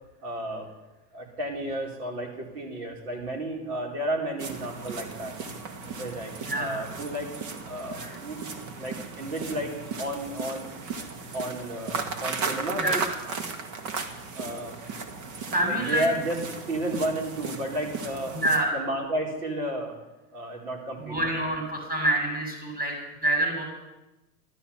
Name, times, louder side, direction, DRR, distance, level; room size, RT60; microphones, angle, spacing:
voice 1, 0.2-0.7 1.1-5.3 6.0-7.3 7.6-8.4 8.8-10.7 11.3-13.0 13.9-14.0 14.3-14.8 15.6-16.4 16.7-18.3 18.7-19.9 20.3-21.2, right 1 dB, 80° right, 0 dB, 4.9 m, -32 dB
sound 1, 4.4-18.6, right 4 dB, 60° right, 2.1 m, -36 dB
voice 2, 6.4-6.8 7.9-8.2 12.8-13.0 15.5-16.0 18.3-18.7 21.0-23.6, right 1 dB, 20° right, 0 dB, 6.9 m, -27 dB
13.5 x 12.5 x 7.3 m, 1.0 s
hypercardioid pair, 115°, 45 cm